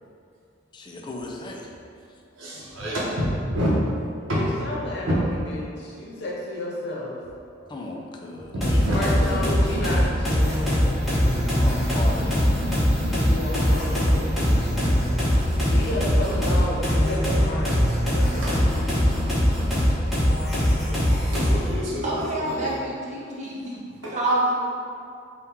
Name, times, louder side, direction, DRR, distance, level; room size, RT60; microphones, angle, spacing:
voice 1, 0.7-1.7 7.7-9.6 11.5-12.8, left 1 dB, 25° left, 0 dB, 0.4 m, -37 dB
voice 2, 2.3-3.7 4.4-4.5 5.2-5.3 7.6-7.7 8.3-9.0 14.1-14.7 15.0-15.8 18.4-18.6 20.0-20.3 20.9-22.8 24.0-24.2, equal, 85° right, -7 dB, 0.7 m, -30 dB
voice 3, 4.2-7.1 8.9-10.4 13.2-14.7 15.7-18.8, left 1 dB, 60° left, -4 dB, 0.8 m, -32 dB
sound 1, 8.6-21.7, equal, ahead, 1.0 m, -22 dB
sound 2, 10.4-18.8, equal, 55° right, 1.1 m, -36 dB
voice 4, 22.0-23.8 24.1-24.5, right 1 dB, 40° right, -5 dB, 0.8 m, -26 dB
3.7 x 2.3 x 4.3 m, 2.4 s
head